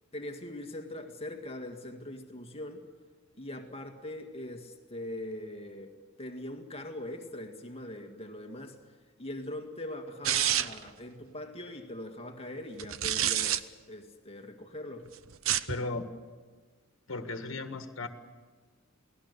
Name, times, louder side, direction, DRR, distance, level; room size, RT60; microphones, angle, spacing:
voice 1, 0.1-2.9 3.4-5.9 6.2-15.1, left 1 dB, 30° left, 4 dB, 1.9 m, -41 dB
sound 1, 10.2-10.9 12.8-13.6 15.3-15.8, right 11 dB, 80° right, 0.8 m, -28 dB
voice 2, 15.7-16.0 17.1-18.1, left 3 dB, 70° left, 7 dB, 1.7 m, -35 dB
28.5 x 18.5 x 6.8 m, 1.4 s
head